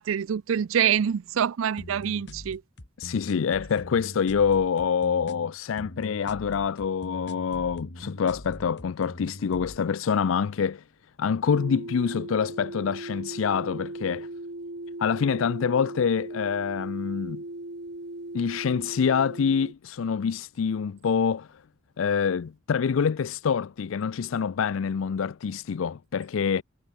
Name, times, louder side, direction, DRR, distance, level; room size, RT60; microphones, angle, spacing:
voice 1, 0.0-2.6, right 8 dB, 80° right, 0.4 m, -26 dB
sound 1, 1.8-9.8, left 1 dB, 60° left, 3.0 m, -42 dB
voice 2, 3.0-10.8 11.2-14.3 15.0-17.4 18.3-21.6 22.0-26.6, left 6 dB, 75° left, 0.4 m, -26 dB
sound 2, 11.5-19.7, right 1 dB, 55° right, 2.2 m, -38 dB
head